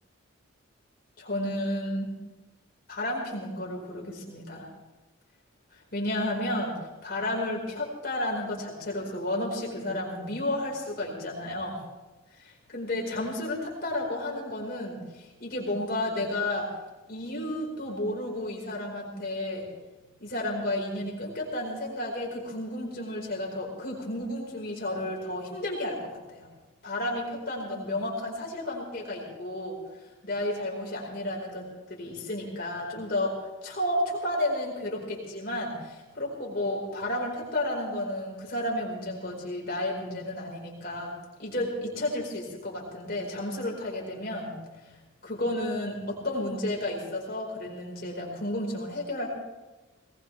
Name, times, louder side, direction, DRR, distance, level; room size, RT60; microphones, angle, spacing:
voice 1, 1.2-2.1 2.9-4.7 5.7-11.8 12.3-16.7 17.1-19.7 20.2-26.5 26.8-29.8 30.2-41.1 41.4-44.6 45.2-49.3, left 1 dB, 45° left, -2 dB, 4.9 m, -32 dB
21.0 x 19.5 x 3.5 m, 1.1 s
head